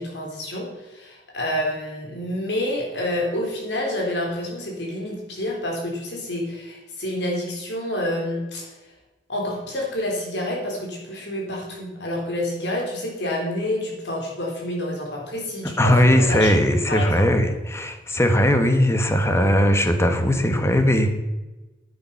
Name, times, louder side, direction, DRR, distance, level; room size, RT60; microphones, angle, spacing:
voice 1, 0.0-8.7 9.3-16.5 16.9-17.2, left 1 dB, 70° left, -1 dB, 3.9 m, -28 dB
voice 2, 15.8-21.1, equal, 15° left, 6 dB, 1.3 m, -19 dB
10.0 x 9.8 x 5.7 m, 1.1 s
head